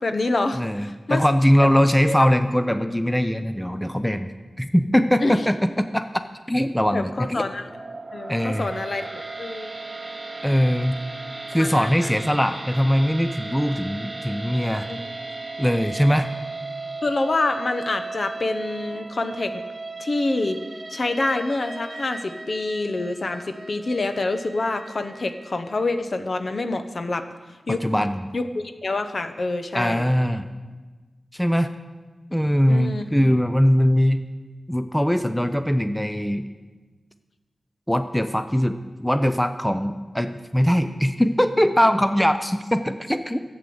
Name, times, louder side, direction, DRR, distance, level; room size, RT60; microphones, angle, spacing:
voice 1, 0.0-1.2 2.1-2.3 5.2-5.4 6.9-7.6 8.1-9.8 11.5-12.1 14.9-15.0 17.0-19.6 20.0-20.6 20.9-27.3 27.7-27.8 28.3-30.1 32.7-33.3, left 2 dB, 55° left, 8 dB, 1.0 m, -27 dB
voice 2, 0.5-6.1 6.5-7.5 8.3-8.7 10.4-11.0 11.5-14.9 15.6-16.3 27.7-28.2 29.7-30.5 31.3-31.7 32.3-34.2 34.7-36.5 37.9-43.4, equal, 5° left, 9 dB, 0.6 m, -21 dB
sound 1, 7.6-25.9, right 3 dB, 30° right, 0.9 m, -36 dB
12.5 x 8.2 x 7.8 m, 1.3 s
wide cardioid pair, 105°, 0 cm